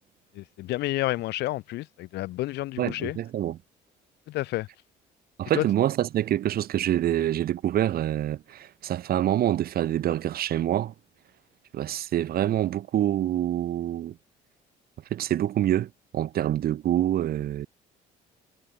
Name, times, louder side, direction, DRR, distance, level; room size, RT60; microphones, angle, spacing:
voice 1, 0.4-3.2 4.3-4.7 5.5-5.6, left 17 dB, 80° left, 6.9 m, -30 dB
voice 2, 2.8-3.6 5.4-10.9 11.7-14.2 15.1-17.7, right 12 dB, 65° right, 7.2 m, -26 dB
cardioid pair, 110°, 17 cm